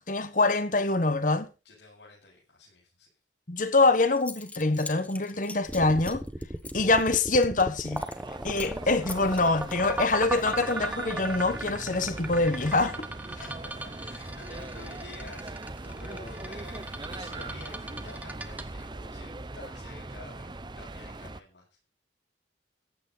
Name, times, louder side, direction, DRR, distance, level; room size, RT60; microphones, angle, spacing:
voice 1, 0.0-1.5 3.5-6.2 6.7-8.0 8.4-13.1, left 3 dB, 45° left, 1.4 m, -25 dB
voice 2, 1.7-3.1 8.8-9.0 9.3-9.6 13.2-21.7, left 2 dB, 80° left, 6.8 m, -50 dB
Zipper (clothing) / Coin (dropping), 3.8-3.9 4.2-8.3 8.5-8.8 9.1-10.8, left 3 dB, 10° left, 1.3 m, -44 dB
sound 1, 5.7-19.8, right 1 dB, 10° right, 1.1 m, -37 dB
sound 2, 7.7-21.4, right 2 dB, 25° right, 0.7 m, -40 dB
15.0 x 10.5 x 4.1 m
head